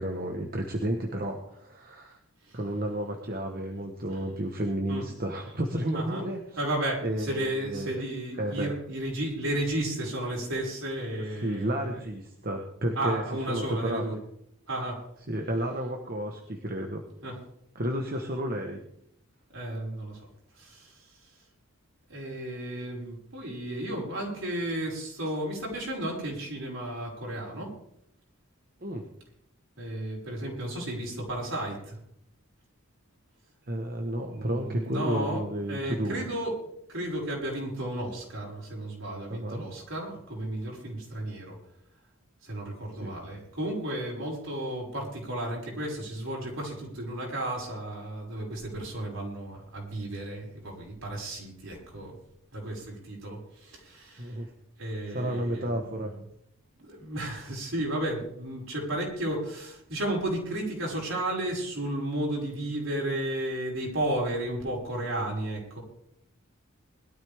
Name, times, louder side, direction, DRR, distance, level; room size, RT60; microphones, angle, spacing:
voice 1, 0.0-2.2 2.5-6.4 7.0-7.9 8.4-8.7 11.3-14.1 15.3-17.0 17.7-18.8 28.8-29.0 33.7-36.2 39.3-39.6 43.0-43.1 54.2-54.5 55.1-56.1, right 1 dB, 40° right, 3 dB, 1.3 m, -32 dB
voice 2, 6.6-11.9 13.0-14.2 14.7-15.0 17.2-17.4 19.5-20.2 20.6-20.9 22.1-27.7 29.8-32.0 34.3-35.4 35.7-36.5 36.9-41.6 42.4-52.2 52.5-54.4 54.8-55.8 56.8-65.8, right 1 dB, 65° right, -2 dB, 5.7 m, -33 dB
21.0 x 13.0 x 3.6 m, 0.72 s
head